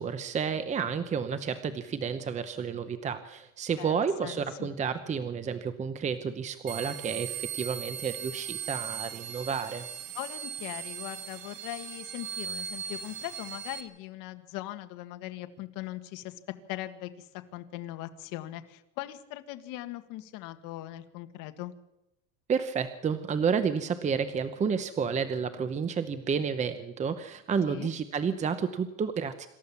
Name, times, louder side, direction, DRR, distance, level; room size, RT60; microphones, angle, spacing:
voice 1, 0.0-9.9 22.5-29.5, right 6 dB, 20° right, 10 dB, 0.9 m, -31 dB
voice 2, 3.8-4.7 10.1-16.3 16.7-21.7 27.7-27.9, left 15 dB, 55° left, 8 dB, 1.9 m, -40 dB
sound 1, 6.7-13.8, right 8 dB, 80° right, 2.7 m, -39 dB
26.5 x 14.0 x 7.1 m, 0.89 s
supercardioid pair, 150°, 39 cm